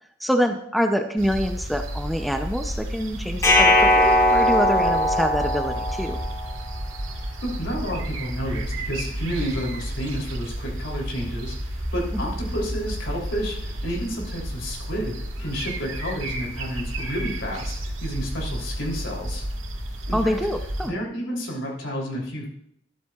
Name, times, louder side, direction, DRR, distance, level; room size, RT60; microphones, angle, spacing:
voice 1, 0.2-6.2 12.1-12.2 20.1-20.9, equal, ahead, 5 dB, 0.5 m, -25 dB
sound 1, 1.2-20.9, right 1 dB, 85° right, 1.7 m, -32 dB
sound 2, 3.4-6.5, left 1 dB, 15° left, 1.5 m, -19 dB
voice 2, 7.4-19.4 20.1-20.4 20.8-22.5, equal, 75° left, -2 dB, 3.2 m, -31 dB
12.5 x 12.0 x 2.4 m, 0.71 s
head